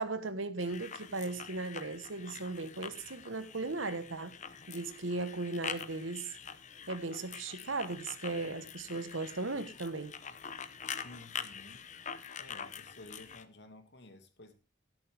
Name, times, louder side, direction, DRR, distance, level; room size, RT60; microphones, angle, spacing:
voice 1, 0.0-4.3 4.7-6.3 6.9-10.1, right 3 dB, 75° right, 1.3 m, -37 dB
sound 1, 0.6-13.4, left 7 dB, 35° left, 0.8 m, -45 dB
voice 2, 11.0-11.8 12.4-14.5, left 2 dB, 60° left, 2.2 m, -53 dB
13.0 x 11.5 x 3.5 m
head